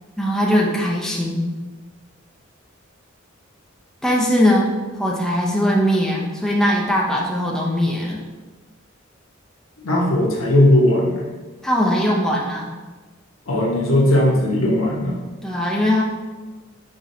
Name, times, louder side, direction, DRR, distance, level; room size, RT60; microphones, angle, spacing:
voice 1, 0.2-1.5 4.0-8.2 11.6-12.7 15.4-16.0, equal, ahead, -4 dB, 0.6 m, -20 dB
voice 2, 9.8-11.3 13.5-15.2, left 1 dB, 85° left, -2 dB, 1.0 m, -17 dB
5.0 x 3.9 x 2.7 m, 1.3 s
head